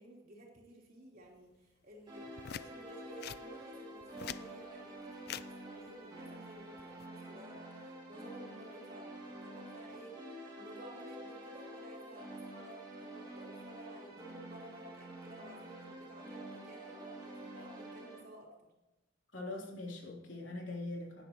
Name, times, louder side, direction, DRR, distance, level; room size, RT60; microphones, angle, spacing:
voice 1, 0.0-7.7 8.1-10.2 10.5-18.7, right 1 dB, 50° right, -3 dB, 3.6 m, -54 dB
sound 1, 2.1-18.2, right 1 dB, 25° right, 2.5 m, -48 dB
sound 2, 2.4-2.7 3.2-3.4 4.0-4.5 5.2-5.5 6.8-7.1, left 9 dB, 55° left, 0.4 m, -43 dB
voice 2, 19.3-21.2, left 2 dB, 75° left, -2 dB, 3.4 m, -42 dB
18.0 x 10.5 x 3.1 m, 1.0 s
head